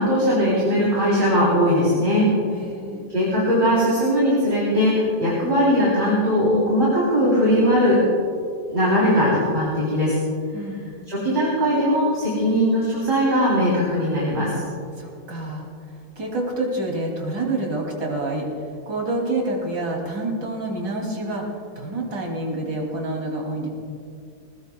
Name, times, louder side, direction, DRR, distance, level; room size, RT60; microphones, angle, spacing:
voice 1, 0.0-2.3 3.1-8.0 8.7-10.2 11.1-14.6, equal, 25° right, -7 dB, 3.6 m, -19 dB
voice 2, 2.5-3.1 10.5-11.0 15.0-15.7 16.2-18.5 18.9-21.4 21.7-23.7, right 2 dB, 60° right, -1 dB, 3.3 m, -27 dB
21.5 x 19.0 x 2.3 m, 2.3 s
omnidirectional pair, 2.1 m